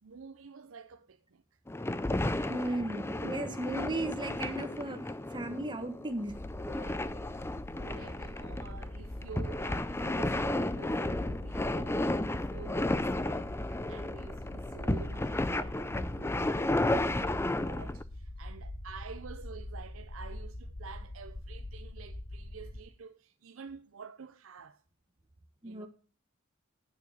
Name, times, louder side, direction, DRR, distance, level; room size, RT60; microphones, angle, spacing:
voice 1, 0.0-1.6 2.3-2.8 3.2-3.5 6.7-7.5 7.7-24.8 25.6-25.9, right 6 dB, 85° right, 0.6 m, -49 dB
sound 1, 1.7-18.0, left 1 dB, 10° left, 0.5 m, -33 dB
voice 2, 2.5-5.0 5.3-6.3 25.6-25.9, right 1 dB, 25° right, 1.4 m, -35 dB
sound 2, 6.3-22.8, left 1 dB, 60° left, 1.5 m, -43 dB
9.4 x 6.9 x 6.5 m
head